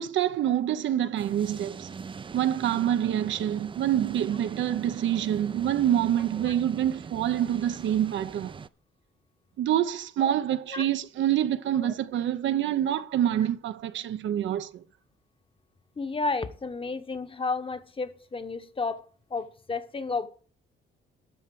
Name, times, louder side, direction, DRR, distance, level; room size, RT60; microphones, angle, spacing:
voice 1, 0.0-1.9 2.3-8.5 9.6-14.8, right 11 dB, 70° right, 0.7 m, -26 dB
sound 1, 1.2-8.7, right 5 dB, 25° right, 0.4 m, -41 dB
voice 2, 16.0-20.3, left 3 dB, 25° left, 1.0 m, -32 dB
12.5 x 4.4 x 7.5 m
cardioid pair, 90°, 20 cm